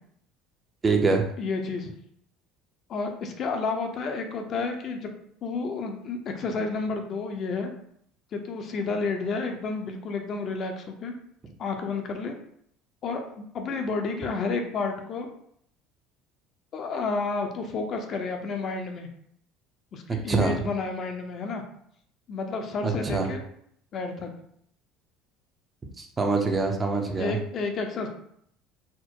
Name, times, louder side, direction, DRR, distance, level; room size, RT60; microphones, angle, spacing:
voice 1, 0.8-1.2 20.1-20.6 22.8-23.3 26.0-27.4, right 4 dB, 20° right, 3 dB, 0.6 m, -25 dB
voice 2, 1.4-1.9 2.9-5.1 5.4-7.7 8.3-11.1 11.6-12.4 13.0-15.3 16.7-19.1 19.9-21.6 22.3-23.4 23.9-24.3 27.2-28.1, left 4 dB, 40° left, 4 dB, 0.6 m, -31 dB
4.3 x 2.0 x 4.6 m, 0.69 s
cardioid pair, 130°, 0 cm